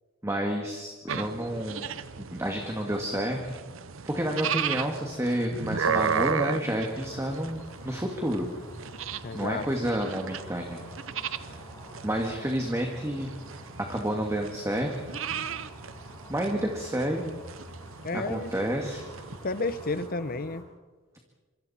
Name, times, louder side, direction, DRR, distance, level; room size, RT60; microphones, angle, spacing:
voice 1, 0.2-1.9 2.2-3.5 4.1-8.5 9.3-10.8 12.0-13.3 13.8-15.0 16.3-17.3 18.1-19.0, right 1 dB, 15° right, 2 dB, 1.9 m, -30 dB
sound 1, 1.1-20.1, right 6 dB, 70° right, 0.8 m, -35 dB
sound 2, 6.9-20.6, equal, 15° left, 6.7 m, -48 dB
voice 2, 9.2-9.7 18.0-18.5 19.4-20.7, left 3 dB, 45° left, 14 dB, 1.0 m, -31 dB
26.5 x 25.5 x 4.3 m, 1.3 s
head